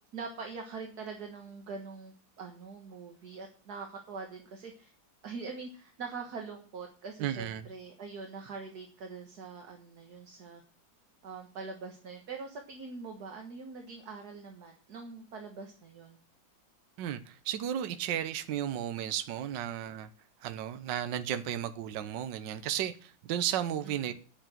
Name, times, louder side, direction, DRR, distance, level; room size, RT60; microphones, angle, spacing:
voice 1, 0.1-4.9 5.2-10.6 11.2-16.2 23.8-24.1, right 4 dB, 55° right, 1.9 m, -43 dB
voice 2, 7.2-7.6 17.0-20.1 20.4-24.1, right 10 dB, 70° right, 1.4 m, -34 dB
9.0 x 7.3 x 7.7 m
omnidirectional pair, 2.0 m